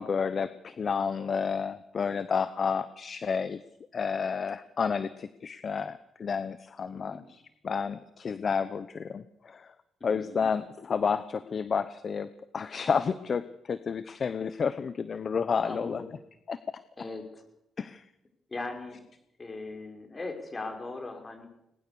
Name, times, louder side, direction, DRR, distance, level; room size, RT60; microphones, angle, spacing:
voice 1, 0.0-3.6 3.9-9.7 10.0-12.3 12.5-16.0 16.5-16.6 17.8-18.0, left 6 dB, 45° left, 14 dB, 0.9 m, -30 dB
voice 2, 10.0-10.5 15.6-16.1 17.0-17.4 18.5-19.0 19.4-21.5, left 3 dB, 25° left, 4 dB, 5.8 m, -39 dB
21.0 x 20.5 x 7.0 m, 0.81 s
cardioid pair, 90°, 0 cm